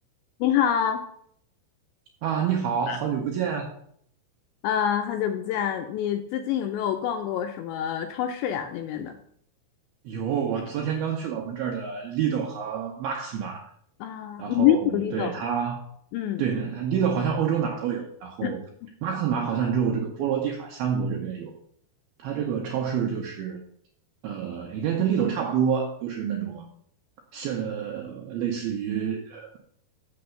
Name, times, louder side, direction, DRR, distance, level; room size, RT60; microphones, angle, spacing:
voice 1, 0.4-1.0 2.9-3.0 4.6-9.2 14.0-15.4 16.1-16.4 18.4-18.5 18.8-18.9, left 10 dB, 85° left, 6 dB, 2.6 m, -26 dB
voice 2, 2.2-3.7 10.1-13.6 14.4-15.8 16.4-18.6 19.0-21.5 22.2-23.6 24.2-26.7 27.3-29.6, right 7 dB, 80° right, 0 dB, 2.3 m, -28 dB
6.9 x 6.8 x 6.6 m, 0.66 s
omnidirectional pair, 5.7 m